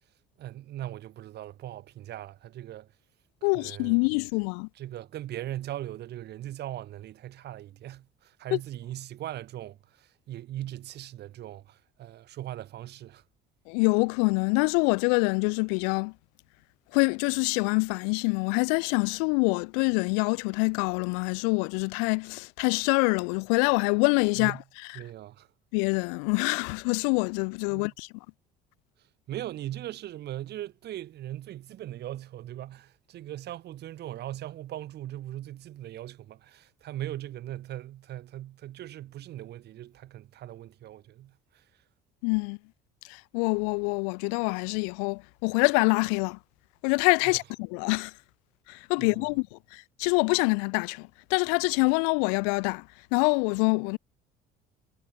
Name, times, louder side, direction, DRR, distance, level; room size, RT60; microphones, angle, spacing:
voice 1, 0.4-2.9 3.4-4.0 4.7-13.2 24.3-24.6 24.9-25.5 27.7-27.9 29.3-41.6 47.2-47.4 49.0-49.3, right 13 dB, 60° right, 5.1 m, -39 dB
voice 2, 3.4-4.7 8.5-8.6 13.7-16.1 16.9-24.6 25.7-28.1 42.2-42.6 43.3-46.4 46.8-48.1 48.7-52.8 53.1-54.0, left 40 dB or more, 85° left, 0.5 m, -25 dB
supercardioid pair, 85°, 19 cm